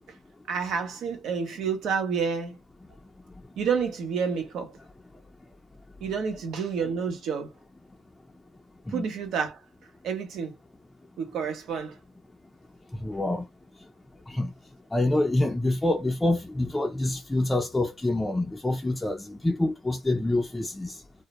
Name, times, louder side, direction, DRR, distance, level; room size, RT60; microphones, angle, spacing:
voice 1, 0.5-2.6 3.6-4.8 6.0-7.5 8.9-9.6 10.0-10.5 11.2-12.0, right 6 dB, 75° right, 0.7 m, -29 dB
voice 2, 13.0-13.4 14.3-14.5 14.9-21.0, left 2 dB, 15° left, 0.4 m, -26 dB
2.1 x 2.1 x 2.8 m
cardioid pair, 90°, 0 cm